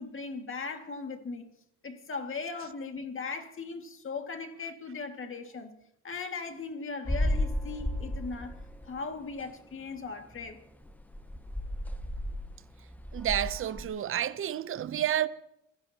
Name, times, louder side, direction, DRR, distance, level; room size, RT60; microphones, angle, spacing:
voice 1, 0.0-1.5 1.8-5.7 6.0-8.6 8.8-10.6, left 4 dB, 45° left, 2.0 m, -38 dB
sound 1, 7.1-9.0 9.3-9.5 10.0-10.1 10.4-10.5 10.8-13.9, left 1 dB, 5° left, 1.1 m, -33 dB
voice 2, 13.1-15.3, right 11 dB, 45° right, 0.7 m, -30 dB
27.5 x 15.5 x 2.9 m
cardioid pair, 90°, 30 cm